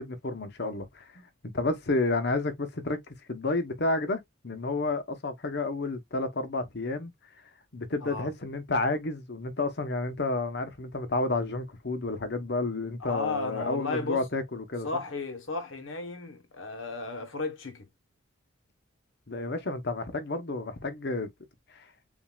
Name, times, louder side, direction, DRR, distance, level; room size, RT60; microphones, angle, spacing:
voice 1, 0.0-1.0 1.4-3.0 3.3-7.1 7.7-14.9 19.3-21.3 21.7-21.8, left 2 dB, 55° left, 1.0 m, -30 dB
voice 2, 13.0-14.3 14.8-17.9, left 3 dB, 70° left, 1.2 m, -34 dB
7.3 x 2.7 x 2.4 m
head